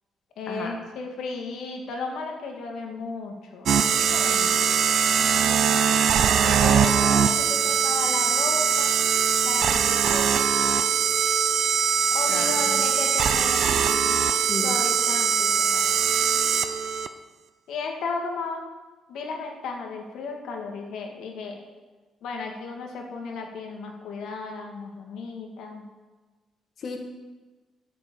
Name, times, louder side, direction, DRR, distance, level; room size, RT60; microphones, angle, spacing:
voice 1, 0.4-3.7 4.1-4.6 6.4-9.0 9.4-10.7 12.1-14.2 14.6-15.9 17.7-18.7 19.1-21.6 22.2-25.8, left 4 dB, 80° left, 2 dB, 1.8 m, -34 dB
sound 1, 3.7-17.1, right 7 dB, 65° right, 0.6 m, -22 dB
voice 2, 5.2-5.8 12.3-12.7 14.5-14.7 26.8-27.0, left 4 dB, 55° left, 3 dB, 1.6 m, -35 dB
9.7 x 6.0 x 7.0 m, 1.3 s
cardioid pair, 90°, 0 cm